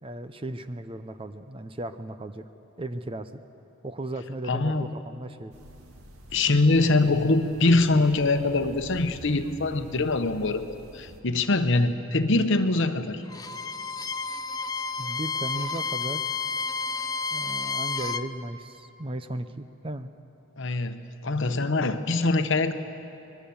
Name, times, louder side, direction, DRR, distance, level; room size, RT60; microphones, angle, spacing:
voice 1, 0.0-2.5 2.8-3.4 3.8-5.5 15.0-16.3 17.3-20.1, right 1 dB, 25° right, 10 dB, 0.7 m, -36 dB
voice 2, 4.5-4.9 6.3-13.2 20.6-22.7, left 2 dB, 60° left, 8 dB, 1.1 m, -23 dB
sound 1, 5.5-11.2, right 1 dB, 85° right, 1.9 m, -48 dB
Bowed string instrument, 13.3-18.3, left 4 dB, 15° left, 0.5 m, -31 dB
25.0 x 21.0 x 7.1 m, 2.9 s
head